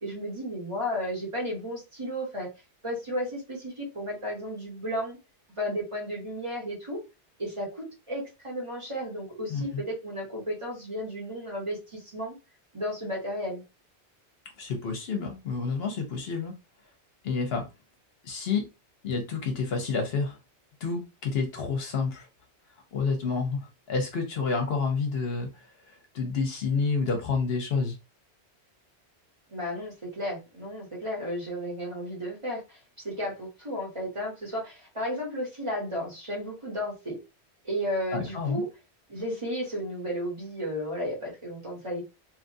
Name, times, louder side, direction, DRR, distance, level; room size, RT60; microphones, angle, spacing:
voice 1, 0.0-2.5 2.8-5.2 5.5-7.0 7.4-12.4 12.7-13.6 29.5-32.8 33.0-37.2 37.6-38.7 39.1-42.1, equal, 30° right, -3 dB, 1.1 m, -33 dB
voice 2, 9.5-9.8 14.6-16.6 17.2-17.6 18.2-18.6 19.0-20.4 20.8-22.3 22.9-27.9 38.1-38.6, left 4 dB, 65° left, 4 dB, 0.9 m, -29 dB
2.8 x 2.4 x 2.5 m, 0.27 s
omnidirectional pair, 1.1 m